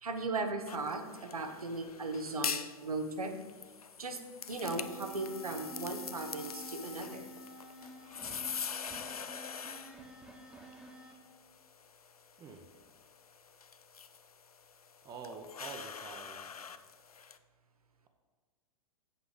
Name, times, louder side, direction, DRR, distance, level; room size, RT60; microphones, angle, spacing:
voice 1, 0.0-3.3 4.0-4.2 4.5-7.3, right 3 dB, 80° right, 6 dB, 0.9 m, -37 dB
sound 1, 0.7-17.4, left 6 dB, 85° left, 0.4 m, -44 dB
sound 2, 4.6-11.1, right 2 dB, 5° right, 1.0 m, -50 dB
voice 2, 15.0-16.5, right 4 dB, 20° right, 4 dB, 0.7 m, -46 dB
7.9 x 5.1 x 4.8 m, 1.4 s
figure-of-eight pair, 100°, 18 cm